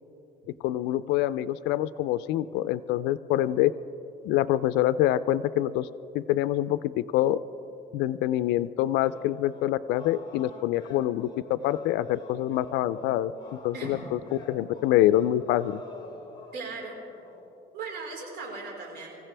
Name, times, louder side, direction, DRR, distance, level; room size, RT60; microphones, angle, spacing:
voice 1, 0.6-3.7 4.2-5.9 6.1-7.4 7.9-13.3 13.6-14.2 14.5-15.8, left 13 dB, 90° left, 14 dB, 0.4 m, -25 dB
sound 1, 9.0-17.5, left 3 dB, 25° left, 2.5 m, -47 dB
voice 2, 16.5-16.9 17.7-19.2, right 4 dB, 75° right, -1 dB, 4.4 m, -38 dB
25.5 x 15.5 x 3.4 m, 2.9 s
cardioid pair, 110°, 17 cm